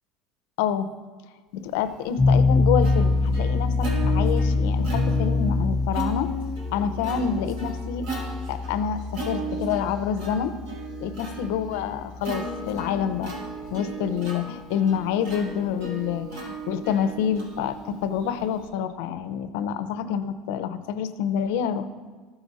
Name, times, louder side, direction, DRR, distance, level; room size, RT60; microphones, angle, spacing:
voice 1, 0.6-0.9 1.5-6.3 6.7-8.1 8.5-10.6 11.0-13.3 13.7-21.9, left 8 dB, 85° left, 11 dB, 0.6 m, -27 dB
Plucked string instrument, 1.9-18.7, right 2 dB, 75° right, 2.8 m, -36 dB
sound 1, 2.2-13.3, left 3 dB, 25° left, 0.8 m, -25 dB
14.5 x 4.9 x 4.1 m, 1.5 s
cardioid pair, 150°, 0 cm